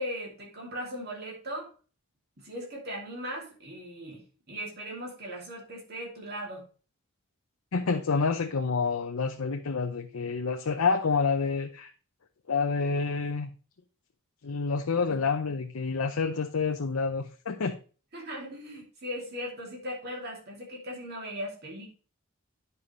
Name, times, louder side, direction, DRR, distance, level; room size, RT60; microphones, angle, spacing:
voice 1, 0.0-1.7 2.4-4.2 4.5-6.6 15.1-15.2 18.1-21.9, equal, 50° right, 2.7 m, -38 dB
voice 2, 7.7-11.9 12.5-13.5 14.4-17.8, left 4 dB, 90° left, 0.7 m, -28 dB
9.7 x 5.5 x 3.2 m
head